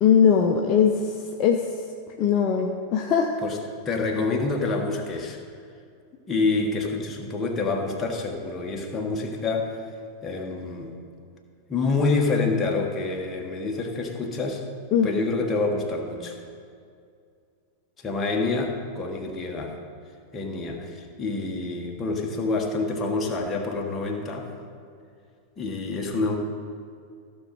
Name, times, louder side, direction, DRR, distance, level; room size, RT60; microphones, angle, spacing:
voice 1, 0.0-0.9 1.4-1.6 2.2-3.3 14.9-15.1, left 7 dB, 35° left, 1 dB, 0.8 m, -20 dB
voice 2, 3.8-5.4 6.3-9.8 10.2-10.9 11.7-14.6 15.0-16.4 18.0-19.8 20.3-24.5 25.6-26.4, left 3 dB, 20° left, 1 dB, 1.6 m, -27 dB
15.5 x 6.5 x 4.4 m, 2.3 s
figure-of-eight pair, 90°, 0 cm